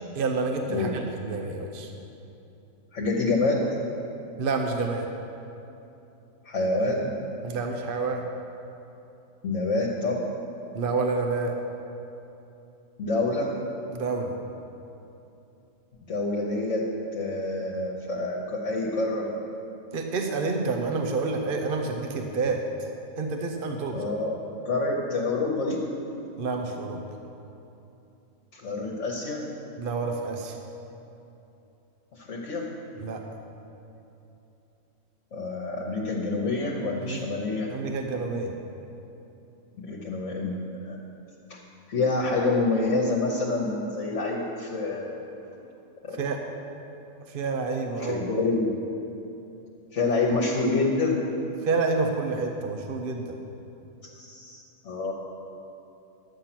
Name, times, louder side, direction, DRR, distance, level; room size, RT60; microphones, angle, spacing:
voice 1, 0.1-1.9 4.4-5.1 7.4-8.2 10.7-11.6 13.9-14.3 19.9-22.6 23.2-24.0 26.4-27.0 29.8-30.6 33.0-33.2 37.0-37.3 37.7-38.5 46.2-46.4 47.3-48.2 51.6-53.4, right 4 dB, 45° right, 3 dB, 0.9 m, -28 dB
voice 2, 2.9-3.7 6.4-7.1 9.4-10.3 13.0-13.5 16.1-19.3 23.9-25.8 28.5-29.4 32.1-32.7 35.3-37.7 39.8-40.6 40.8-41.0 41.5-41.6 41.9-45.2 46.0-46.2 48.0-48.8 49.9-51.2 54.0-55.1, left 2 dB, 60° left, -3 dB, 1.4 m, -27 dB
11.5 x 8.9 x 5.9 m, 2.9 s
omnidirectional pair, 1.4 m